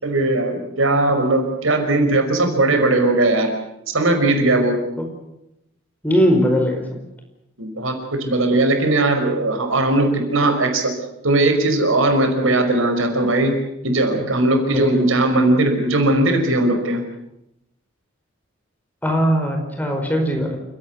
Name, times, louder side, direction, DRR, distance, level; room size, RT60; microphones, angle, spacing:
voice 1, 0.0-3.5 3.9-4.8 7.6-11.0 11.2-13.6 13.8-17.0, right 2 dB, 90° right, 5 dB, 5.3 m, -18 dB
voice 2, 6.0-6.8 14.1-14.2 14.7-14.9 19.0-20.6, equal, 10° left, 3 dB, 4.9 m, -19 dB
29.0 x 17.0 x 8.3 m, 0.86 s
head